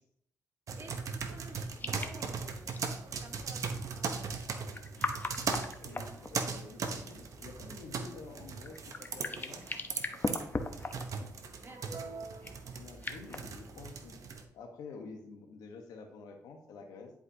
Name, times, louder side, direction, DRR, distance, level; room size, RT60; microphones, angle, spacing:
sound 1, 0.7-14.4, right 5 dB, 60° right, 0.9 m, -39 dB
voice 1, 0.8-2.8 3.2-4.7 11.5-12.1, right 3 dB, 40° right, 3 dB, 1.4 m, -53 dB
sound 2, 1.8-2.2 2.7-2.8 4.5-6.7 8.6-11.3 12.4-13.4, left 3 dB, 30° left, 0.8 m, -38 dB
voice 2, 5.8-9.7 12.7-14.2 14.5-17.1, left 4 dB, 85° left, 4 dB, 1.2 m, -49 dB
10.5 x 4.8 x 2.8 m, 0.72 s
cardioid pair, 80°, 6 cm